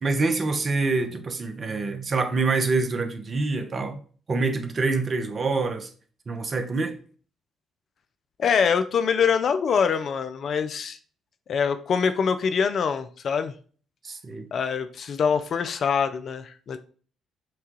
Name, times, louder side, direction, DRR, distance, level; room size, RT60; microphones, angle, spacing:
voice 1, 0.0-4.0 4.3-5.9 6.3-7.0 14.0-14.5, right 3 dB, 40° right, 0.7 m, -26 dB
voice 2, 8.4-11.0 11.5-13.5 14.5-16.8, left 6 dB, 55° left, 0.4 m, -24 dB
5.8 x 2.3 x 3.0 m
hypercardioid pair, 45°, 0 cm